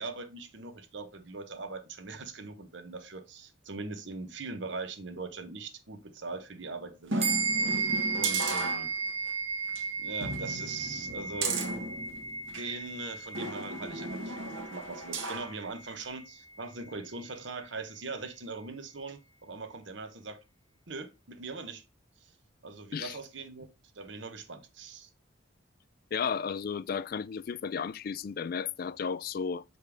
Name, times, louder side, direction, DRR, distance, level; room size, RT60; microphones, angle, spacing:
voice 1, 0.0-7.5 8.1-8.9 10.0-11.6 12.5-20.4 20.9-21.8 22.2-22.3 22.6-23.7 23.9-25.1, right 3 dB, 65° right, 1.0 m, -41 dB
sound 1, 7.1-9.3 9.7-9.8 10.2-12.7 13.3-15.5 16.0-16.1, right 3 dB, 80° right, 1.4 m, -35 dB
sound 2, 7.2-16.9, right 4 dB, 35° right, 1.5 m, -35 dB
voice 2, 26.1-29.6, left 6 dB, 50° left, 0.3 m, -33 dB
6.5 x 5.2 x 3.4 m
head